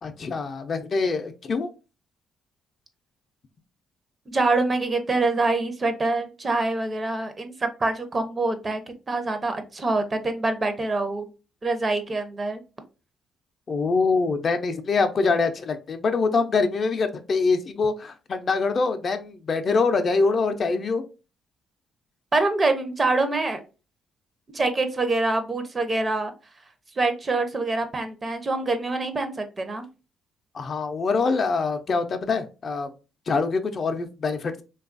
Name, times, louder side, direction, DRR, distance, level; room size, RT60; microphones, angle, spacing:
voice 1, 0.0-1.7 13.7-21.0 30.5-32.9 33.3-34.6, left 4 dB, 45° left, 7 dB, 0.4 m, -24 dB
voice 2, 4.3-8.8 9.1-11.3 11.6-12.6 22.3-23.6 24.5-26.3 27.0-29.9, right 2 dB, 30° right, 8 dB, 0.5 m, -25 dB
3.2 x 2.3 x 2.4 m, 0.32 s
cardioid pair, 90°, 0 cm